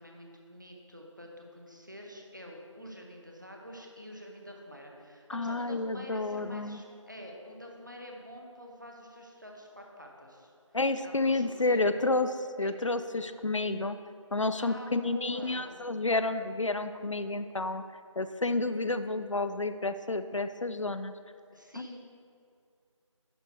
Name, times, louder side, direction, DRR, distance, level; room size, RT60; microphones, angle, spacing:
voice 1, 0.0-10.5 11.0-11.9 12.6-12.7 14.6-15.8 21.5-22.0, equal, 35° right, 0 dB, 1.0 m, -47 dB
voice 2, 5.3-6.8 10.7-12.3 12.6-14.0 14.3-17.8 18.2-21.1 21.8-22.0, left 2 dB, 65° left, 11 dB, 0.4 m, -30 dB
11.0 x 4.0 x 4.3 m, 2.4 s
figure-of-eight pair, 175°, 17 cm